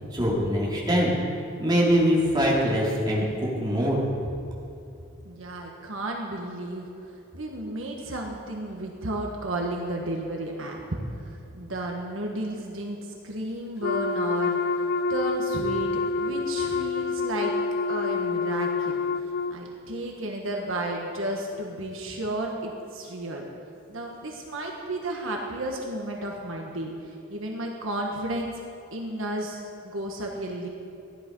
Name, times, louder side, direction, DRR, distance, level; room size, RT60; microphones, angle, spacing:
voice 1, 0.1-1.1 1.6-3.2 3.6-4.0, equal, 20° right, -5 dB, 2.9 m, -23 dB
voice 2, 5.2-6.9 7.3-13.0 13.2-14.8 15.1-15.9 16.2-17.5 17.9-19.0 19.5-23.5 23.9-28.6 28.9-30.7, right 1 dB, 70° right, 0 dB, 1.4 m, -33 dB
Wind instrument woodwind instrument, 13.8-19.6, left 4 dB, 45° left, 0.5 m, -27 dB
15.0 x 11.0 x 5.4 m, 2.7 s
head